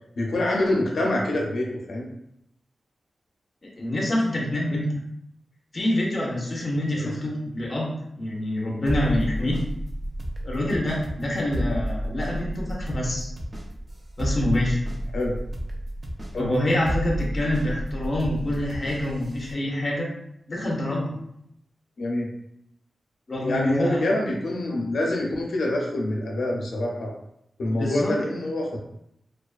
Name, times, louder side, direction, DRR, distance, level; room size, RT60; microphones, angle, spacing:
voice 1, 0.2-2.1 6.9-7.1 15.1-15.4 16.3-16.5 22.0-22.3 23.4-27.1 27.6-28.8, left 1 dB, 90° left, -1 dB, 0.5 m, -26 dB
voice 2, 3.7-4.9 5.7-9.6 10.4-13.3 14.2-14.8 16.3-20.1 20.5-21.2 23.3-24.1 27.7-28.2, left 1 dB, 35° left, -2 dB, 0.5 m, -26 dB
sound 1, 8.9-19.5, equal, 25° right, 0.4 m, -31 dB
2.3 x 2.3 x 2.4 m, 0.76 s
wide cardioid pair, 160°, 0 cm